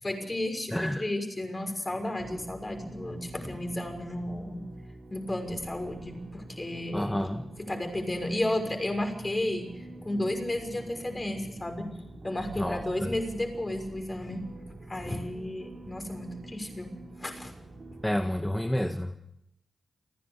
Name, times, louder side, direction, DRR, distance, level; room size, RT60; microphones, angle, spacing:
voice 1, 0.0-4.6 5.1-7.3 7.6-9.7 10.0-11.9 12.2-14.4 14.9-17.5, left 1 dB, 30° left, 5 dB, 6.1 m, -33 dB
voice 2, 0.7-1.0 6.9-7.4 12.6-13.1 18.0-19.2, left 1 dB, 10° left, 5 dB, 1.6 m, -29 dB
sound 1, 2.2-18.1, right 2 dB, 50° right, 3.6 m, -46 dB
30.0 x 10.5 x 8.3 m, 0.81 s
cardioid pair, 45°, 0 cm